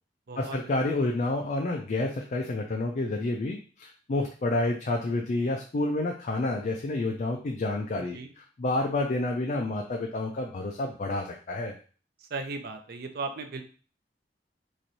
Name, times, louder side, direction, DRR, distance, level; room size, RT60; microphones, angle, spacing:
voice 1, 0.4-11.8, left 2 dB, 45° left, 1 dB, 0.4 m, -29 dB
voice 2, 8.0-8.3 12.3-13.6, right 3 dB, 60° right, 6 dB, 0.5 m, -36 dB
3.1 x 2.5 x 4.0 m, 0.40 s
head